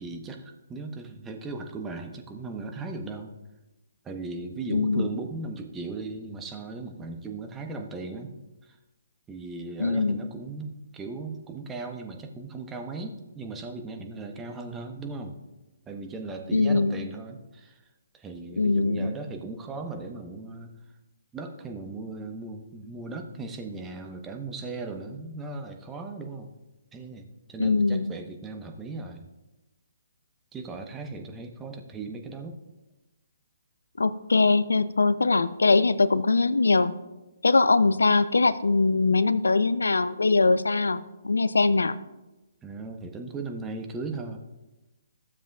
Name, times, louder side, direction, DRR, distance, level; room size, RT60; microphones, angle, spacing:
voice 1, 0.0-3.3 4.0-8.3 8.7-8.8 9.3-15.4 15.9-17.8 18.1-20.7 21.3-26.5 26.9-29.3 30.5-32.6 42.6-44.4, right 3 dB, 15° right, 4 dB, 1.0 m, -37 dB
voice 2, 4.7-5.1 9.8-10.2 16.5-17.1 18.6-19.1 27.6-28.1 34.0-36.9 37.4-42.0, left 3 dB, 80° left, 16 dB, 0.5 m, -22 dB
15.0 x 7.3 x 2.4 m, 1.0 s
figure-of-eight pair, 135°, 0 cm